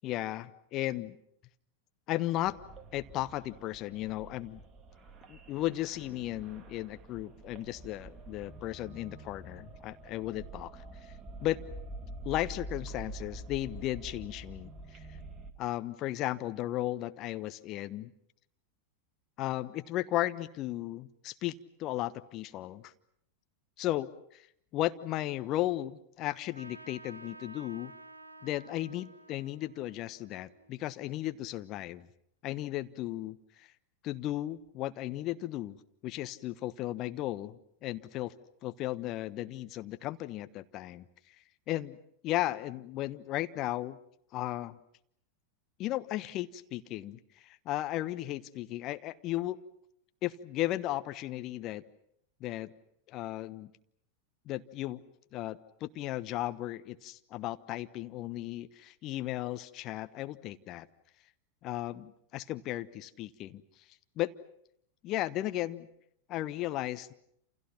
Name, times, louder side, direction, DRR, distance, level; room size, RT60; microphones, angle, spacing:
voice 1, 0.0-1.2 2.1-2.6 2.9-4.6 5.3-11.1 11.4-11.6 12.2-15.0 15.6-18.1 19.4-22.9 23.8-24.5 24.7-27.9 28.4-32.1 32.4-33.7 34.0-35.8 36.0-38.3 38.6-41.0 41.7-42.0 42.2-44.0 44.3-44.8 45.8-49.6 50.2-51.8 52.4-52.7 53.1-53.7 54.5-55.0 55.3-60.9 61.6-63.6 64.2-64.3 65.0-65.9 66.3-67.1, left 15 dB, 35° left, 12 dB, 1.1 m, -35 dB
sound 1, 2.4-15.5, right 1 dB, 20° right, 2.3 m, -47 dB
Trumpet, 26.5-31.5, right 2 dB, 80° right, 1.1 m, -53 dB
28.5 x 28.5 x 6.0 m, 0.71 s
figure-of-eight pair, 90°, 0 cm